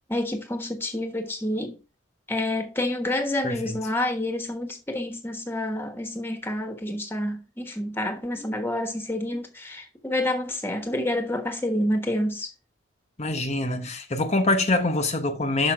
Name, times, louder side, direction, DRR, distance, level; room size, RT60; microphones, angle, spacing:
voice 1, 0.1-1.8 2.3-12.5, left 1 dB, 10° left, 1.2 m, -28 dB
voice 2, 3.4-3.8 13.2-15.7, left 2 dB, 35° left, 0.9 m, -25 dB
5.9 x 5.8 x 4.6 m
head